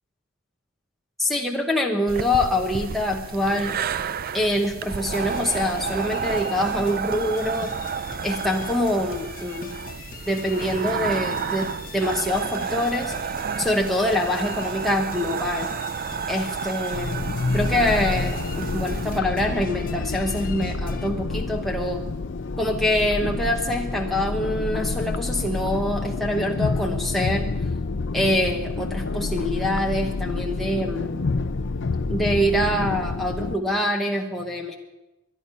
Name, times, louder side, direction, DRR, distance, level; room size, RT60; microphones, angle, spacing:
voice 1, 1.2-3.8 4.3-7.7 8.2-9.8 10.3-13.1 13.6-15.7 16.3-17.3 17.5-22.0 22.6-27.4 28.1-31.2 32.1-34.8, left 1 dB, ahead, 0 dB, 1.0 m, -25 dB
sound 1, 2.1-19.2, right 6 dB, 45° right, 0.4 m, -31 dB
sound 2, 5.1-21.1, left 4 dB, 40° left, 1.0 m, -41 dB
sound 3, 16.9-33.5, left 3 dB, 60° left, 0.6 m, -28 dB
22.0 x 11.5 x 5.6 m, 1.0 s
head